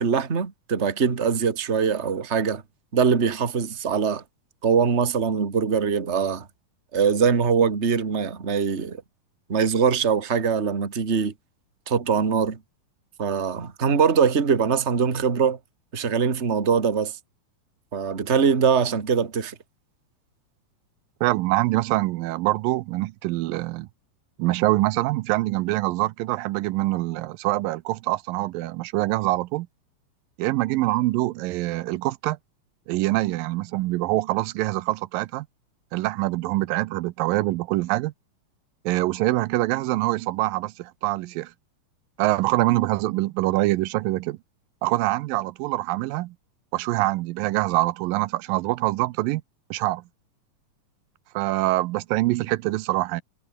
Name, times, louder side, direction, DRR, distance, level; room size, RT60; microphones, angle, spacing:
voice 1, 0.0-2.6 2.9-4.2 4.6-6.5 6.9-9.0 9.5-11.3 11.9-12.6 13.2-15.6 15.9-17.2 17.9-19.6, right 6 dB, 25° right, 1.8 m, -22 dB
voice 2, 21.2-23.9 24.4-29.7 30.4-32.4 32.9-35.5 35.9-38.1 38.9-41.5 42.2-44.4 44.8-46.4 46.7-49.4 49.7-50.0 51.3-53.2, right 18 dB, 85° right, 2.5 m, -24 dB
omnidirectional pair, 3.9 m